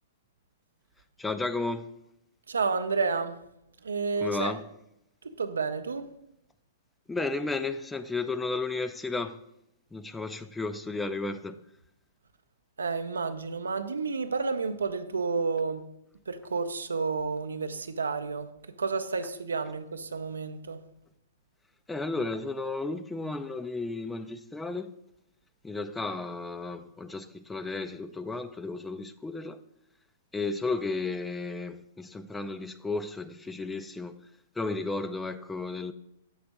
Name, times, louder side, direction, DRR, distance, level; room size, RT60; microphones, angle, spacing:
voice 1, 1.2-1.9 4.2-4.6 7.1-9.4 9.9-11.6 21.9-24.9 25.6-29.6 30.3-34.1 34.6-35.9, left 3 dB, 10° left, 0.3 m, -33 dB
voice 2, 2.5-3.4 3.8-4.6 5.2-6.0 12.8-15.9 16.3-18.5 18.8-20.8, right 4 dB, 85° right, 0.5 m, -30 dB
7.1 x 3.4 x 5.2 m
hypercardioid pair, 115°, 0 cm